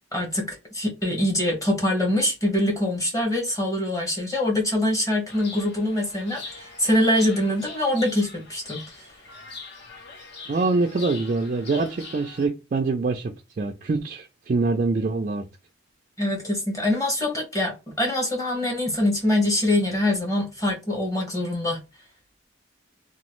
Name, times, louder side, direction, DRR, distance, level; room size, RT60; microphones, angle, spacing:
voice 1, 0.1-9.1 16.2-21.8, left 1 dB, 15° left, 1.2 m, -24 dB
Chirp tweet, 5.3-12.5, left 4 dB, 55° left, 0.8 m, -42 dB
voice 2, 10.5-15.4, right 3 dB, 40° right, 0.3 m, -25 dB
2.9 x 2.3 x 3.0 m
head